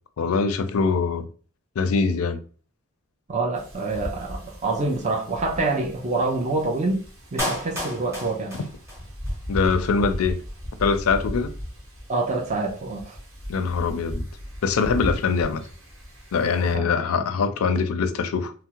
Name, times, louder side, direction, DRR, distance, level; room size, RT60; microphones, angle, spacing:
voice 1, 0.2-1.2 1.8-2.4 9.5-10.4 10.8-11.5 13.5-14.3 14.6-15.6 16.3-18.5, left 5 dB, 80° left, 0.4 m, -23 dB
voice 2, 3.3-7.0 7.3-8.6 12.1-13.2 16.7-16.9, right 3 dB, 35° right, 0.5 m, -26 dB
Wind, 3.5-16.7, equal, 65° right, 1.1 m, -36 dB
Clapping, 7.4-9.4 9.6-9.7, equal, 15° right, 1.0 m, -31 dB
3.4 x 2.0 x 2.8 m
head